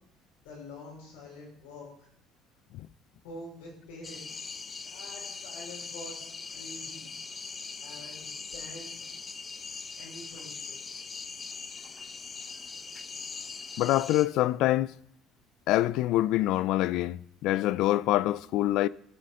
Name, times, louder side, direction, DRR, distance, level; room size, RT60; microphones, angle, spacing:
voice 1, 0.4-2.1 3.2-7.1 7.8-9.0 10.0-11.1, left 1 dB, 85° left, 4.5 m, -47 dB
sound 1, 4.0-14.3, left 5 dB, 35° left, 0.7 m, -41 dB
voice 2, 13.8-14.9 15.7-18.9, left 15 dB, 70° left, 0.3 m, -25 dB
13.0 x 6.3 x 5.4 m
hypercardioid pair, 70°, 0 cm